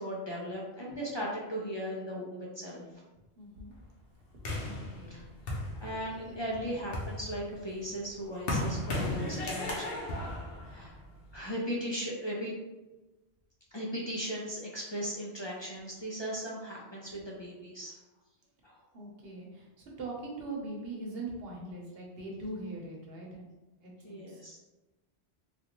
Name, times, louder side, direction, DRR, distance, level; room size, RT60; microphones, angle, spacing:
voice 1, 0.0-2.8 4.6-5.3 5.8-11.0 11.3-12.5 13.7-18.0 18.6-18.8 24.0-24.7, equal, 40° left, -4 dB, 0.4 m, -38 dB
voice 2, 3.4-3.7 4.6-5.2 18.9-23.5 23.8-24.4, right 2 dB, 70° right, -2 dB, 1.0 m, -41 dB
sound 1, 4.4-6.3 6.7-11.4, left 1 dB, 65° left, 0.9 m, -35 dB
3.5 x 2.5 x 2.9 m, 1.1 s
omnidirectional pair, 1.1 m